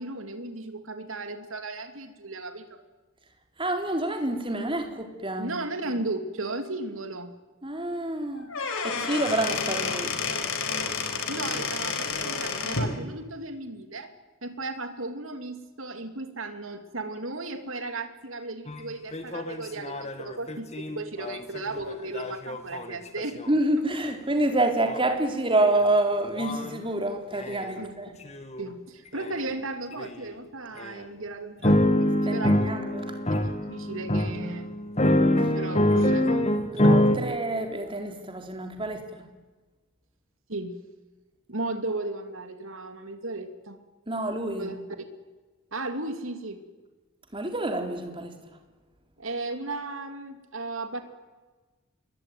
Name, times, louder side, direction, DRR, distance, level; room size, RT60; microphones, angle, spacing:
voice 1, 0.0-2.8 5.4-7.3 11.3-14.1 14.4-23.4 27.8-28.1 28.6-32.7 33.3-34.7 35.5-36.5 36.8-36.9 37.2-37.3 40.5-40.8 41.5-43.8 44.6-44.8 45.7-46.6 49.2-51.0, right 2 dB, 65° right, 8 dB, 3.1 m, -35 dB
voice 2, 3.6-5.5 7.6-8.5 8.8-10.2 23.5-28.2 32.3-33.2 35.4-35.5 36.7-39.3 44.1-44.7 47.3-48.6, right 1 dB, 25° right, 4 dB, 3.8 m, -28 dB
Squeak / Wood, 8.4-12.9, left 5 dB, 70° left, 4.8 m, -30 dB
sound 1, 18.7-18.8 19.1-23.5 24.9-25.0 25.6-25.9 26.3-26.8 27.4-27.7 28.3-28.6 29.2-29.3 30.0-30.1 30.8-30.9 31.6-37.2, left 1 dB, 30° left, 2.2 m, -25 dB
28.0 x 22.0 x 9.5 m, 1.3 s
head